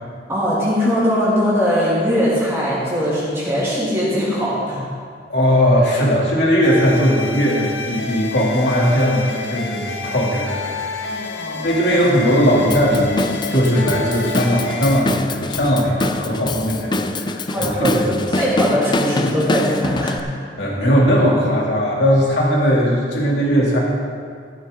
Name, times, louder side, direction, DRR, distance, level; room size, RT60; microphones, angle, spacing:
voice 1, 0.3-4.9 11.0-12.0 17.5-20.4, equal, 15° right, -9 dB, 2.7 m, -21 dB
voice 2, 5.3-11.0 11.6-18.1 20.6-23.8, equal, 70° left, -4 dB, 2.9 m, -18 dB
sound 1, 6.6-15.0, left 4 dB, 85° left, 1.1 m, -30 dB
Drum kit / Drum, 12.7-20.2, left 2 dB, 25° left, 0.5 m, -24 dB
14.0 x 11.0 x 3.8 m, 2.2 s
head